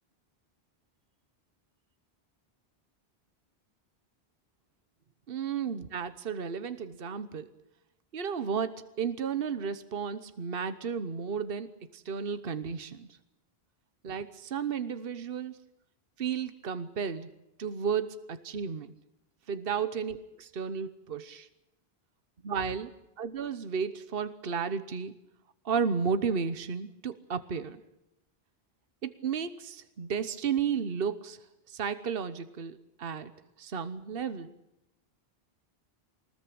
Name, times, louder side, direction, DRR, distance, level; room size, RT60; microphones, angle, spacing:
voice 1, 5.3-7.5 8.1-13.1 14.0-15.6 16.2-17.3 17.6-18.9 19.5-21.5 22.4-22.9 23.2-25.1 25.6-27.8 29.0-31.4 31.7-33.3 33.6-34.5, right 6 dB, 65° right, 12 dB, 1.2 m, -33 dB
24.0 x 20.0 x 8.6 m, 0.87 s
omnidirectional pair, 1.0 m